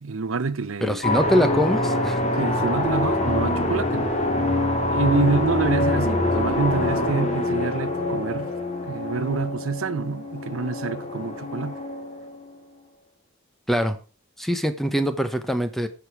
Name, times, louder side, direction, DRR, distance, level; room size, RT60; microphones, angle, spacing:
voice 1, 0.0-1.0 2.4-4.1 4.9-8.5 8.8-11.7, right 4 dB, 90° right, 0.7 m, -27 dB
voice 2, 0.8-2.2 13.7-14.0 14.4-15.9, equal, ahead, 0.9 m, -23 dB
sound 1, 1.0-12.5, left 1 dB, 35° left, 2.0 m, -25 dB
11.0 x 7.1 x 4.7 m
head